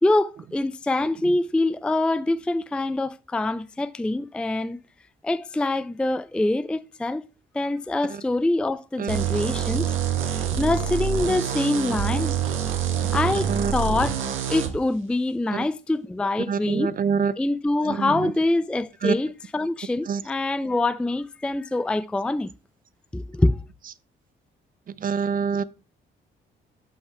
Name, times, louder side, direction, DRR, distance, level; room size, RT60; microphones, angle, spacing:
voice 1, 0.0-4.8 5.2-7.2 7.5-9.9 10.6-12.3 13.1-14.2 14.5-16.9 17.4-22.5 23.1-23.6, left 2 dB, 5° left, 0.3 m, -25 dB
sound 1, 9.1-14.7, right 8 dB, 85° right, 1.3 m, -26 dB
voice 2, 16.5-17.3 17.9-18.1 19.0-19.2 20.1-20.2 25.0-25.6, right 6 dB, 45° right, 0.5 m, -25 dB
5.6 x 5.6 x 4.4 m
cardioid pair, 90°, 20 cm